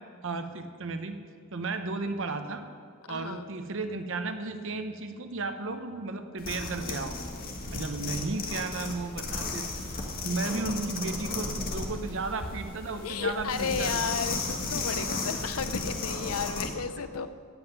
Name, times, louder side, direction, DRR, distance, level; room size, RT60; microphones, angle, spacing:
voice 1, 0.2-1.2 1.5-2.6 3.1-7.2 7.7-9.7 10.2-14.2, right 3 dB, 60° right, 7 dB, 0.9 m, -34 dB
voice 2, 3.1-3.5 13.0-17.3, left 5 dB, 85° left, 11 dB, 0.7 m, -33 dB
sound 1, 6.4-16.7, left 3 dB, 45° left, 1.6 m, -34 dB
14.5 x 5.6 x 9.4 m, 2.2 s
head